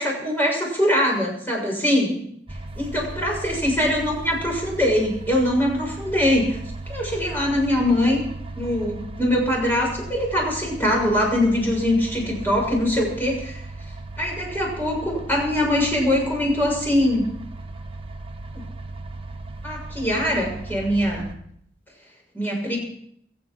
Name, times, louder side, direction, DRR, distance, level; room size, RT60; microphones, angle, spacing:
voice 1, 0.0-2.2 2.8-6.6 6.9-8.2 8.5-13.6 14.2-17.3 18.5-18.7 19.6-21.3 22.3-22.8, left 1 dB, 10° left, -2 dB, 6.7 m, -22 dB
sound 1, 2.5-21.4, right 2 dB, 30° right, 1.3 m, -37 dB
22.5 x 9.2 x 6.0 m, 0.69 s
head